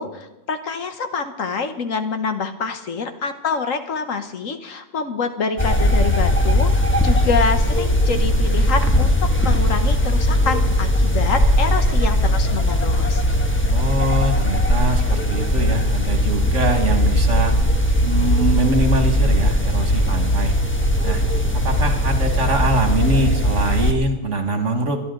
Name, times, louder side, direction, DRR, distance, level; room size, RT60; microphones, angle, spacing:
voice 1, 0.0-6.7 7.0-13.2, left 5 dB, 70° left, 8 dB, 1.6 m, -26 dB
sound 1, 5.6-23.9, equal, 10° left, 1.2 m, -18 dB
voice 2, 13.7-17.6 18.0-20.5 21.0-21.2 21.5-25.0, right 1 dB, 60° right, 5 dB, 2.3 m, -23 dB
24.5 x 11.0 x 4.0 m, 0.94 s
omnidirectional pair, 1.4 m